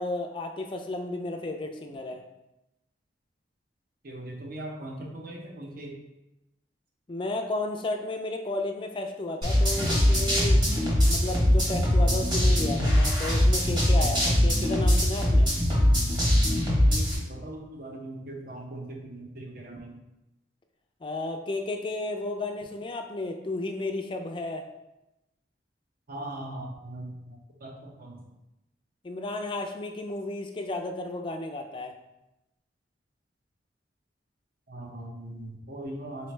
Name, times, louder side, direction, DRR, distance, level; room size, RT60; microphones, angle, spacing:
voice 1, 0.0-2.2 7.1-10.6 11.1-15.5 21.0-24.7 29.0-31.9, left 2 dB, 25° left, 4 dB, 0.3 m, -33 dB
voice 2, 4.0-6.0 16.8-20.0 26.1-28.2 34.7-36.3, right 1 dB, 50° right, 1 dB, 0.7 m, -40 dB
sound 1, 9.4-17.2, left 1 dB, 25° right, 1.2 m, -22 dB
4.0 x 3.1 x 3.2 m, 0.93 s
head